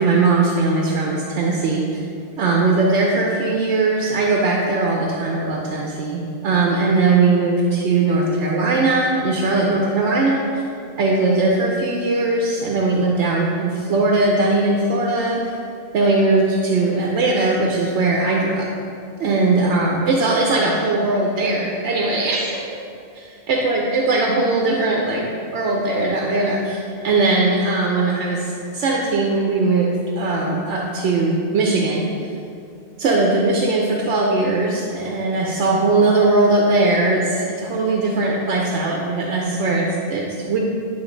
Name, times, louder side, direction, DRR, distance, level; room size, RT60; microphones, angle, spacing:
voice 1, 0.0-1.8 2.4-10.6 11.0-15.4 15.9-18.6 19.2-22.6 23.5-32.1 33.0-40.6, right 3 dB, 85° right, -1 dB, 1.0 m, -19 dB
8.9 x 3.7 x 3.8 m, 2.5 s
omnidirectional pair, 1.1 m